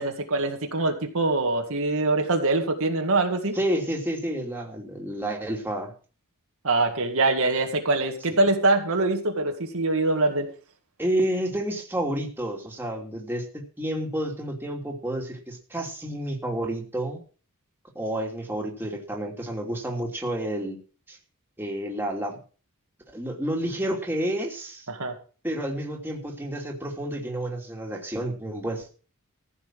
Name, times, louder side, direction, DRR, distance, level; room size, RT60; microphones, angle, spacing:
voice 1, 0.0-3.6 6.6-10.5 24.9-25.1, right 2 dB, 65° right, 3 dB, 2.1 m, -24 dB
voice 2, 3.5-5.9 11.0-17.2 17.9-20.8 21.1-21.2 21.6-22.4 23.1-24.8 25.4-29.0, right 1 dB, 10° right, 0 dB, 2.9 m, -30 dB
15.0 x 6.1 x 7.6 m, 0.38 s
head